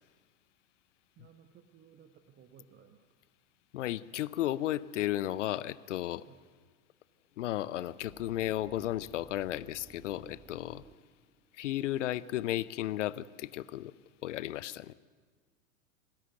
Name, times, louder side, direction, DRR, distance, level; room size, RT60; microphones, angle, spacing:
voice 1, 1.2-3.0 6.3-6.4, right 8 dB, 25° right, 7 dB, 1.1 m, -58 dB
voice 2, 3.7-6.3 7.4-10.8 11.5-13.9 14.2-14.9, left 13 dB, 55° left, 19 dB, 0.7 m, -34 dB
sound 1, 8.0-13.1, right 5 dB, 10° right, 0.7 m, -57 dB
27.5 x 13.5 x 8.1 m, 1.5 s
figure-of-eight pair, 85°, 44 cm